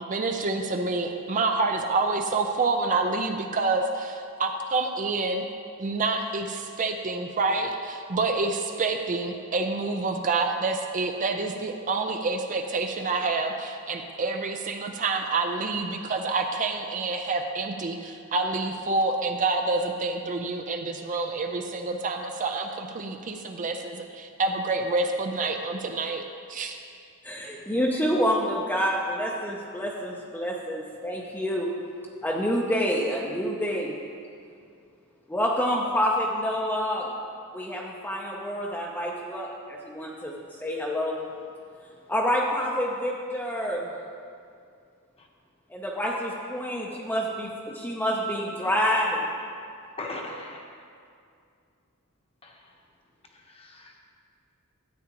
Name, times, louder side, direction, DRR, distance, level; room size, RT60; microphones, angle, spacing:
voice 1, 0.1-5.4 5.8-26.2 26.5-26.8, right 3 dB, 35° right, 4 dB, 0.5 m, -27 dB
voice 2, 27.2-31.7 32.2-34.0 35.3-37.1 37.5-41.2 42.1-43.9 45.7-49.3, equal, 10° left, -3 dB, 0.6 m, -28 dB
voice 3, 50.0-50.8 52.4-52.7 53.3-54.0, left 2 dB, 25° left, 0 dB, 1.0 m, -40 dB
13.0 x 8.7 x 3.0 m, 2.4 s
head